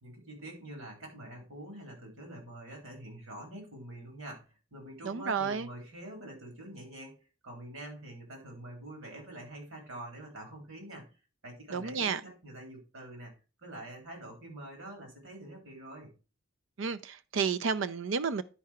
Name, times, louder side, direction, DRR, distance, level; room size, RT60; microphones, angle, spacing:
voice 1, 0.0-4.5 4.7-11.1 11.4-13.3 13.6-16.1, right 1 dB, 85° right, 3.8 m, -46 dB
voice 2, 5.0-5.7 11.7-12.2 16.8-18.4, right 5 dB, 60° right, 0.5 m, -31 dB
10.5 x 4.8 x 4.4 m
head